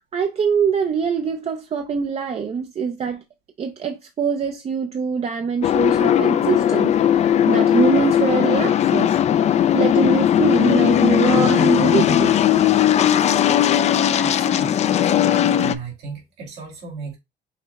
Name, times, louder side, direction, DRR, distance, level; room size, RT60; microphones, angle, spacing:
voice 1, 0.0-3.2 3.6-12.4, right 6 dB, 35° right, 0.5 m, -24 dB
sound 1, 5.6-15.7, left 10 dB, 40° left, 0.4 m, -17 dB
voice 2, 13.9-15.0 15.6-17.2, right 3 dB, 85° right, 2.4 m, -35 dB
5.7 x 2.1 x 4.0 m
cardioid pair, 110°, 17 cm